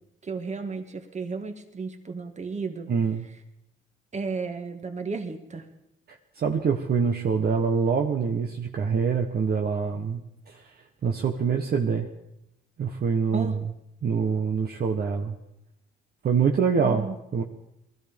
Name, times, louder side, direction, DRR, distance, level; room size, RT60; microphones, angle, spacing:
voice 1, 0.2-2.9 4.1-5.7 13.3-13.6 16.8-17.1, right 4 dB, 35° right, 6 dB, 2.0 m, -33 dB
voice 2, 2.9-3.3 6.4-10.2 10.5-10.7 11.0-12.1 12.8-13.6 14.0-15.4 16.2-17.1 17.3-17.4, right 6 dB, 50° right, 2 dB, 1.3 m, -25 dB
19.5 x 13.5 x 5.3 m, 0.83 s
cardioid pair, 90°, 20 cm